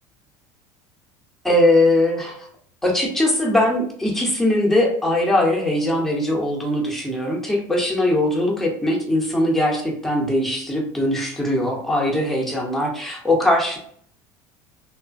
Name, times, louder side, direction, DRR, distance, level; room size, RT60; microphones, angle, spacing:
voice 1, 1.4-2.4 2.8-13.8, left 1 dB, 5° left, -1 dB, 0.7 m, -20 dB
3.1 x 2.1 x 2.5 m, 0.62 s
supercardioid pair, 120°, 10 cm